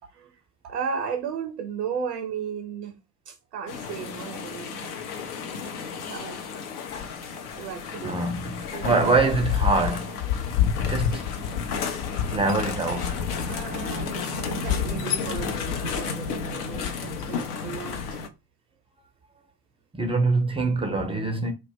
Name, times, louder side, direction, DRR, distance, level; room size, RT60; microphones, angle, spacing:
voice 1, 0.6-3.0 3.3-4.9 5.9-6.4 7.1-7.2 7.5-8.2 8.7-9.0 13.4-18.2, right 7 dB, 75° right, 0.6 m, -35 dB
sound 1, 3.7-18.3, left 7 dB, 70° left, 0.6 m, -30 dB
voice 2, 8.0-10.2 10.7-11.2 12.3-13.3 19.9-21.5, right 3 dB, 10° right, 0.4 m, -24 dB
2.1 x 2.0 x 3.4 m
figure-of-eight pair, 50°, 48 cm